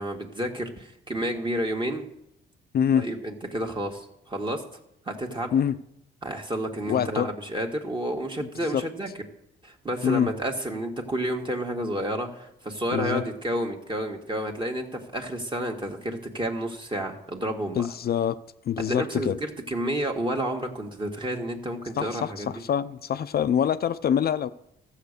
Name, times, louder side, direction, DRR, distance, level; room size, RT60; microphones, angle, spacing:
voice 1, 0.0-2.0 3.0-4.6 5.1-5.5 6.2-9.1 9.6-17.9 18.9-22.5, right 1 dB, 25° right, 1.7 m, -30 dB
voice 2, 2.7-3.1 5.5-5.8 6.9-7.3 8.7-8.8 10.0-10.3 12.9-13.2 17.7-18.4 18.7-19.4 22.0-24.5, left 8 dB, 50° left, 0.5 m, -25 dB
14.0 x 7.3 x 6.6 m
cardioid pair, 90°, 20 cm